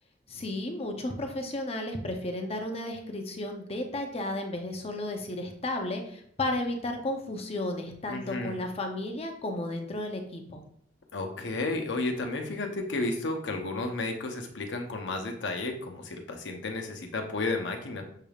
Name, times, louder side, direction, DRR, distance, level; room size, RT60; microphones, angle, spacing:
voice 1, 0.3-10.6, left 1 dB, 35° left, 4 dB, 0.6 m, -33 dB
voice 2, 8.1-8.6 11.1-18.0, left 2 dB, 85° left, 4 dB, 0.8 m, -32 dB
6.5 x 3.4 x 2.4 m, 0.66 s
head